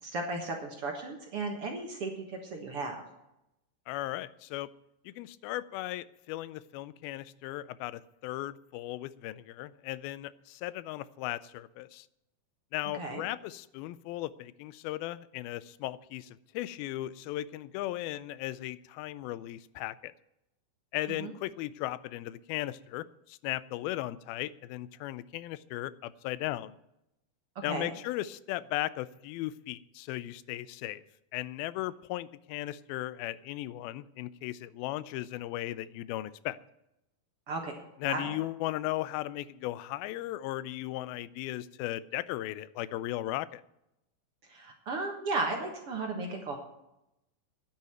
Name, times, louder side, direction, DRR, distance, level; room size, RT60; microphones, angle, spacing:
voice 1, 0.0-3.0 12.9-13.2 21.2-21.3 27.6-27.9 37.5-37.8 38.1-38.4 44.5-46.6, right 3 dB, 55° right, 2 dB, 1.8 m, -35 dB
voice 2, 3.9-4.7 5.1-12.1 12.7-20.1 20.9-26.8 27.6-31.0 31.3-36.6 38.0-43.6, left 15 dB, 90° left, 17 dB, 2.4 m, -37 dB
10.5 x 8.5 x 8.9 m, 0.85 s
omnidirectional pair, 4.2 m